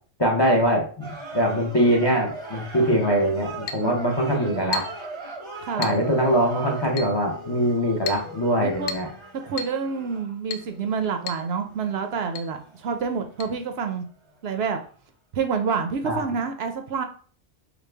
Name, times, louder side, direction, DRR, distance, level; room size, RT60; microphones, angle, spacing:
voice 1, 0.2-4.8 5.8-9.1 16.0-16.3, equal, 30° left, -1 dB, 0.6 m, -22 dB
sound 1, 1.0-14.4 14.7-14.8, right 2 dB, 30° right, 0.7 m, -39 dB
Chink clink, 3.7-3.9 4.7-5.0 5.8-6.0 7.0-7.2 8.1-8.3 8.9-9.1 9.6-9.8 10.5-10.7 11.3-11.5 11.7-11.8 12.3-12.5 13.4-13.5, left 6 dB, 65° left, 0.7 m, -33 dB
voice 2, 3.8-4.7 5.6-6.0 8.6-8.9 9.4-14.0 14.4-14.8 15.3-17.0, right 5 dB, 70° right, 6 dB, 0.8 m, -28 dB
4.9 x 2.2 x 3.3 m, 0.42 s
omnidirectional pair, 1.2 m